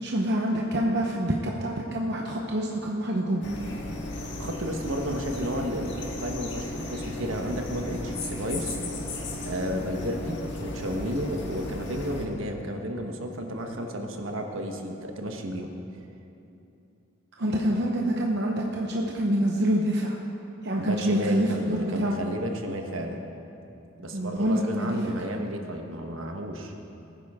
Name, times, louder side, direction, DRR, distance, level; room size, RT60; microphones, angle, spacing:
voice 1, 0.0-3.4 17.4-20.2 20.6-22.1 24.1-25.0, right 1 dB, 55° right, -1 dB, 0.9 m, -26 dB
sound 1, 3.4-12.2, left 1 dB, 60° left, 1.6 m, -35 dB
voice 2, 4.4-8.8 9.4-15.7 20.8-23.2 24.0-26.7, equal, 70° right, 3 dB, 1.2 m, -32 dB
19.0 x 9.8 x 3.7 m, 2.8 s
head